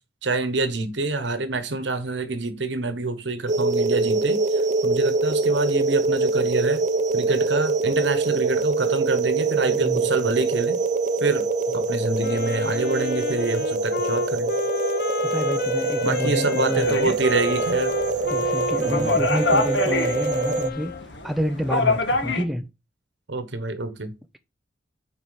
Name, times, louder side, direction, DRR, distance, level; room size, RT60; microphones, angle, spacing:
voice 1, 0.2-6.8 7.1-10.8 11.2-11.5 11.7-14.5 16.0-17.9 18.8-19.3 23.3-24.1, right 3 dB, 75° right, 1.1 m, -26 dB
sound 1, 3.5-20.7, right 3 dB, 40° right, 0.6 m, -24 dB
voice 2, 9.6-10.1 15.2-17.1 18.3-20.9 21.2-22.7, equal, ahead, 0.5 m, -28 dB
Wind instrument woodwind instrument, 12.2-21.1, left 5 dB, 50° left, 0.5 m, -32 dB
sound 2, 16.8-22.4, left 2 dB, 75° left, 1.5 m, -26 dB
9.5 x 4.4 x 4.8 m
head